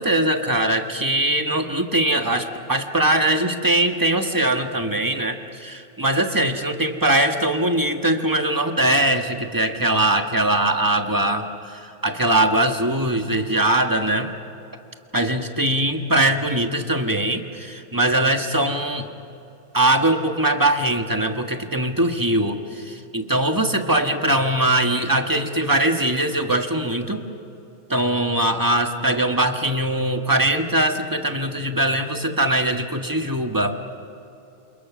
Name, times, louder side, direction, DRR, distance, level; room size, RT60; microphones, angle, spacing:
voice 1, 0.0-14.3 15.1-19.1 19.7-27.2 27.9-33.8, right 1 dB, 15° right, 5 dB, 1.4 m, -21 dB
28.0 x 28.0 x 6.2 m, 2.8 s
omnidirectional pair, 1.4 m